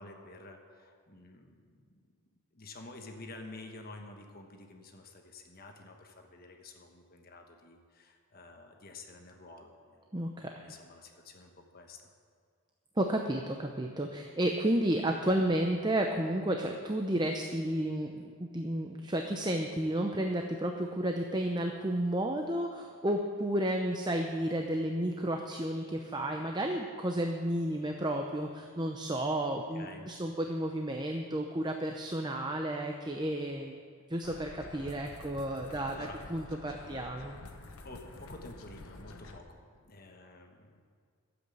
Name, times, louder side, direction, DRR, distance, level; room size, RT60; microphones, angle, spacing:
voice 1, 0.0-2.0 2.5-10.0 10.6-12.1 29.7-30.1 35.8-36.2 37.8-40.8, left 2 dB, 40° left, 3 dB, 1.2 m, -50 dB
voice 2, 10.1-10.6 13.0-33.8 34.1-36.0 36.3-37.4, right 1 dB, 20° right, 3 dB, 0.6 m, -32 dB
sound 1, 34.2-39.4, left 2 dB, 75° left, 1.2 m, -49 dB
12.5 x 8.0 x 8.4 m, 2.1 s
head